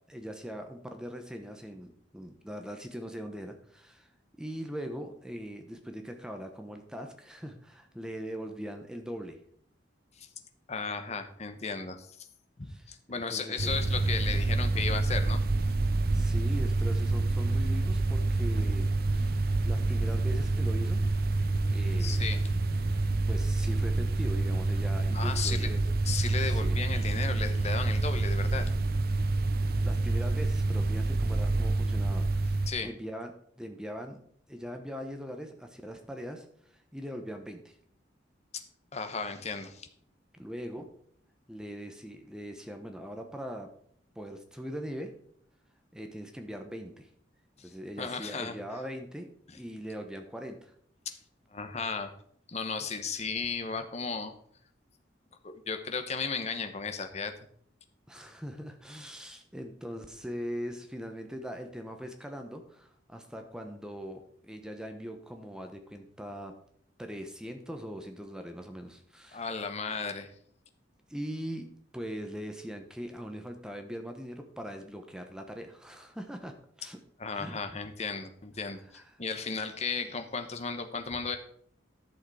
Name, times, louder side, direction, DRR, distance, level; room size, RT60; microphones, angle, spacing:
voice 1, 0.1-4.1 4.4-9.4 12.7-12.8 13.3-13.7 16.1-18.9 19.1-21.1 21.7-22.2 23.3-25.8 26.4-26.8 29.5-34.2 34.5-36.5 36.7-37.7 40.4-40.8 41.5-43.7 44.1-45.1 45.9-47.1 47.6-49.3 49.5-50.7 58.1-66.5 67.0-69.4 71.1-77.0 77.3-77.5 78.9-79.0, equal, 5° right, 5 dB, 0.9 m, -41 dB
voice 2, 10.7-12.3 12.6-15.4 22.0-22.4 25.1-25.7 26.0-28.7 32.7-32.9 38.9-39.9 47.6-47.7 48.0-48.6 51.0-51.1 51.5-52.1 52.5-54.3 55.4-57.3 69.3-70.3 77.2-81.4, left 5 dB, 35° left, 7 dB, 1.0 m, -35 dB
sound 1, 13.6-32.7, right 2 dB, 55° right, 0.7 m, -27 dB
11.0 x 6.5 x 4.8 m, 0.64 s
head